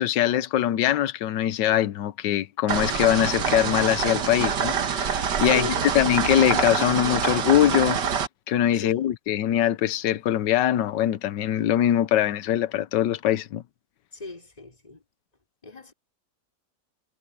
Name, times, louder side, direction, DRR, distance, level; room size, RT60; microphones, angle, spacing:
voice 1, 0.0-8.0 8.5-13.6, left 11 dB, 85° left, 1.4 m, -22 dB
sound 1, 2.7-8.3, right 7 dB, 80° right, 2.0 m, -26 dB
voice 2, 5.4-5.9 8.8-9.1 14.1-15.0 15.6-15.9, left 3 dB, 20° left, 4.2 m, -38 dB
omnidirectional pair, 1.8 m